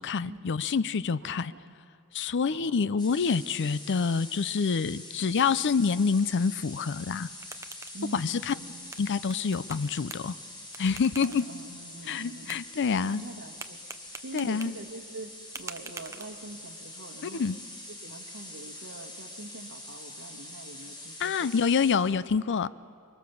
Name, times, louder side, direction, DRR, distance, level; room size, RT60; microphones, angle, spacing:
voice 1, 0.0-1.5 2.1-7.3 8.1-8.5 9.0-10.4 10.8-11.5 12.1-13.2 14.3-14.7 17.3-17.6 21.2-22.7, left 5 dB, 55° left, 17 dB, 0.5 m, -27 dB
voice 2, 1.2-1.8 2.5-3.0 5.2-5.6 7.9-8.9 11.2-13.8 14.2-17.5 18.0-21.5 22.1-22.2, right 2 dB, 65° right, -2 dB, 1.5 m, -45 dB
sound 1, 3.0-22.0, left 1 dB, 20° left, 3.7 m, -45 dB
sound 2, 7.1-16.7, right 4 dB, 15° right, 0.7 m, -48 dB
24.5 x 23.5 x 7.0 m, 2.3 s
head